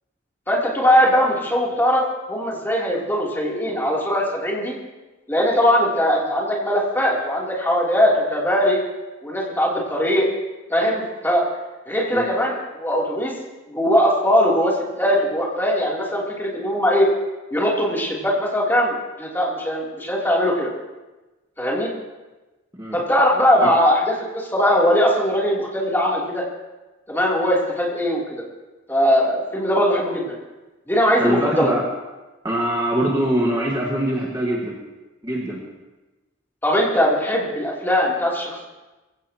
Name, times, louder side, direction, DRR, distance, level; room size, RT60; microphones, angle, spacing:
voice 1, 0.5-2.0 2.3-4.7 5.3-8.8 9.2-10.3 10.7-11.5 11.9-13.3 13.7-17.1 17.5-20.7 21.6-21.9 22.9-26.4 27.1-28.4 28.9-30.4 30.9-31.7 36.6-38.6, equal, 10° left, -4 dB, 3.1 m, -20 dB
voice 2, 31.2-31.8 32.4-34.7 35.2-35.6, right 1 dB, 20° right, -3 dB, 1.6 m, -23 dB
22.5 x 16.0 x 3.0 m, 1.1 s
head